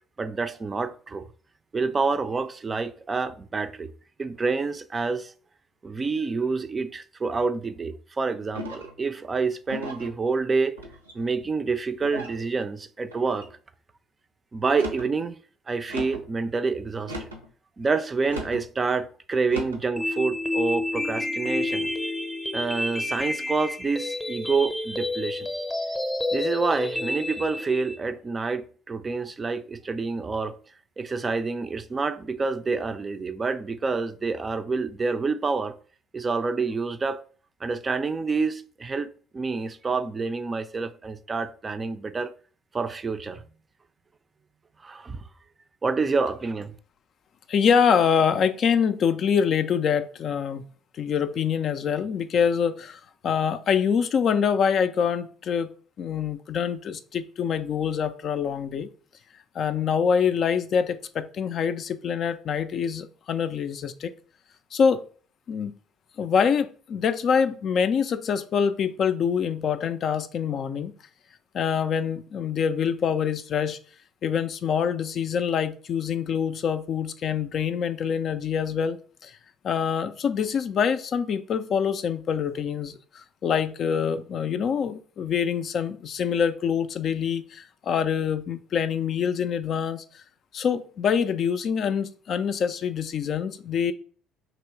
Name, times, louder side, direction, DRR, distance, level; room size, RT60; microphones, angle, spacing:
voice 1, 0.2-1.3 1.7-3.9 4.2-5.3 5.8-10.7 11.1-13.5 14.5-15.4 15.7-17.3 17.8-21.9 22.5-25.5 26.3-30.5 31.0-35.7 36.1-37.2 37.6-42.3 42.7-43.4 44.8-45.2 45.8-46.7, right 4 dB, 30° right, 0.4 m, -28 dB
sound 1, 8.5-9.0 9.7-10.1 10.8-11.3 12.0-12.4 13.1-13.5 14.6-15.1 15.9-16.3 17.0-17.5 18.3-18.6 19.5-19.9, equal, 90° right, 0.6 m, -37 dB
sound 2, 20.0-28.0, left 2 dB, 10° left, 0.7 m, -29 dB
voice 2, 47.5-50.6 51.0-55.7 56.0-58.9 59.6-64.1 64.7-65.0 65.5-65.7 66.2-70.9 71.5-73.8 74.2-79.3 79.6-90.2 90.5-93.9, left 7 dB, 45° left, 0.3 m, -25 dB
3.0 x 3.0 x 4.4 m
figure-of-eight pair, 55°, 0 cm